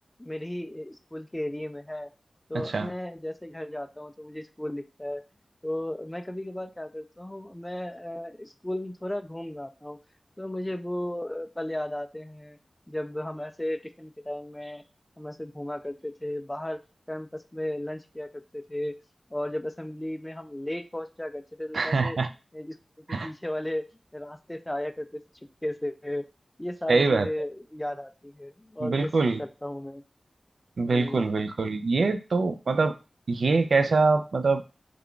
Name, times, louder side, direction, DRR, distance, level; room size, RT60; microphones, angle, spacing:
voice 1, 0.2-2.1 2.5-5.2 5.6-10.0 10.4-12.6 12.9-14.8 15.2-16.8 17.1-19.0 19.3-22.2 22.5-22.8 23.1-23.9 24.1-25.2 25.6-26.3 26.6-29.1 29.4-30.0 30.9-31.3, left 1 dB, 15° left, 9 dB, 0.3 m, -35 dB
voice 2, 2.5-2.9 21.7-22.3 23.1-23.3 26.9-27.3 28.8-29.4 30.8-33.0 33.3-34.6, right 3 dB, 75° right, 9 dB, 0.3 m, -24 dB
3.3 x 2.3 x 3.7 m, 0.31 s
wide cardioid pair, 65°, 0 cm